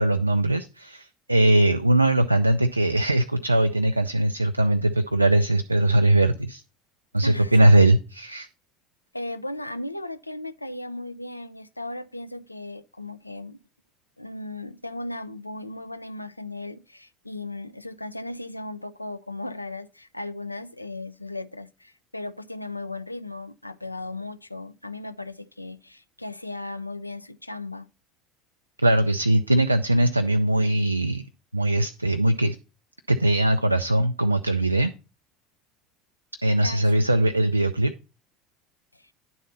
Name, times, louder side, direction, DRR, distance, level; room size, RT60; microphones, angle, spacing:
voice 1, 0.0-6.6 7.1-8.5 28.8-31.2 31.5-32.6 33.1-34.9 36.4-37.9, right 1 dB, 85° right, 0.3 m, -20 dB
voice 2, 7.2-7.9 9.1-13.6 14.2-27.9 36.6-36.9 38.9-39.1, left 2 dB, 85° left, 0.3 m, -36 dB
10.0 x 4.1 x 5.4 m
figure-of-eight pair, 65°, 0 cm